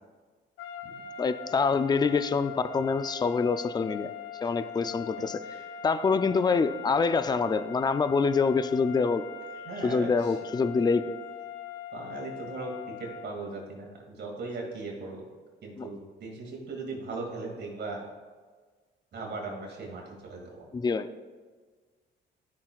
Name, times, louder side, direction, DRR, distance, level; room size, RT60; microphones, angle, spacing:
sound 1, 0.6-13.4, left 6 dB, 80° left, 0.7 m, -42 dB
voice 1, 1.2-4.1 4.4-5.4 5.8-9.2 9.8-11.2 15.8-15.9 20.7-21.1, left 5 dB, 20° left, 12 dB, 0.4 m, -26 dB
voice 2, 9.6-10.3 11.9-12.7 13.0-15.3 15.6-18.0 19.1-20.7, right 3 dB, 60° right, -1 dB, 2.3 m, -38 dB
13.0 x 6.1 x 2.4 m, 1.5 s
cardioid pair, 90°, 20 cm